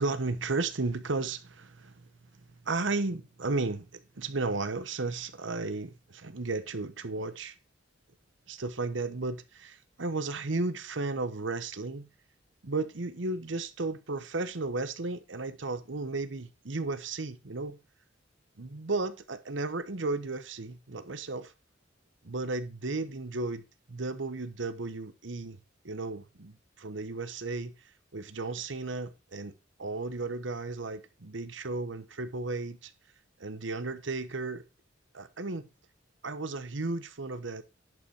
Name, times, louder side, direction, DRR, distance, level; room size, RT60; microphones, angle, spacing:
voice 1, 0.0-2.1 2.6-7.5 8.5-12.1 12.6-17.8 18.6-21.5 22.2-23.6 23.9-25.6 25.8-27.7 28.1-29.5 29.8-32.9 33.4-34.6 35.1-35.7 36.2-37.6, right 3 dB, 75° right, 1.0 m, -34 dB
11.0 x 5.5 x 4.6 m
head